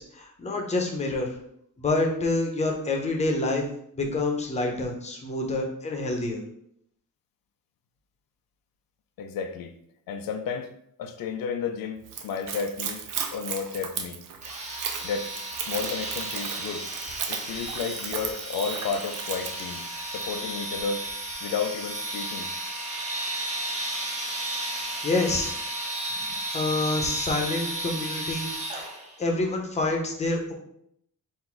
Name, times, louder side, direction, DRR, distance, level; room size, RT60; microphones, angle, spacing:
voice 1, 0.0-1.3 1.8-3.6 3.9-6.4 24.6-24.7 25.0-25.5 26.5-28.5 28.7-28.8 29.2-30.5, left 2 dB, 20° left, 1 dB, 0.7 m, -27 dB
voice 2, 9.2-9.8 10.1-10.7 11.0-13.0 13.3-14.2 15.0-15.4 15.7-16.9 17.3-19.9 20.1-21.1 21.4-22.5 26.1-26.4, left 6 dB, 85° left, 7 dB, 0.5 m, -32 dB
Splash splatter / Trickle dribble, 12.0-20.4, right 7 dB, 70° right, 0.6 m, -36 dB
sound 1, 14.4-29.2, right 1 dB, 20° right, 0.8 m, -33 dB
4.1 x 2.6 x 4.4 m, 0.72 s
wide cardioid pair, 160°, 33 cm